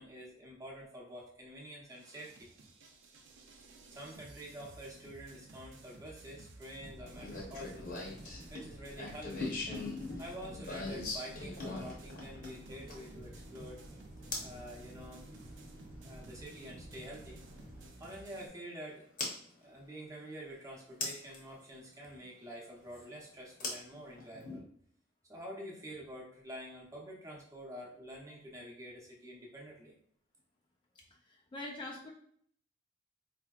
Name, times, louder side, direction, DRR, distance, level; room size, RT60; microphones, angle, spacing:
voice 1, 0.0-2.5 3.6-7.9 8.5-9.6 10.2-13.8 14.4-15.2 16.0-17.4 18.0-19.1 19.4-24.6 25.3-29.9, equal, 15° right, -3 dB, 0.8 m, -48 dB
sound 1, 1.9-18.5, right 2 dB, 75° right, 0.5 m, -55 dB
sound 2, 6.8-17.9, equal, 45° right, 0.8 m, -52 dB
sound 3, 7.2-13.2 14.3-14.6 16.5-16.6 19.2-19.3 21.0-21.4 23.6-24.6, left 3 dB, 45° left, 0.8 m, -40 dB
voice 2, 31.3-32.1, left 2 dB, 25° left, -1 dB, 0.3 m, -43 dB
4.4 x 2.8 x 2.4 m, 0.63 s
head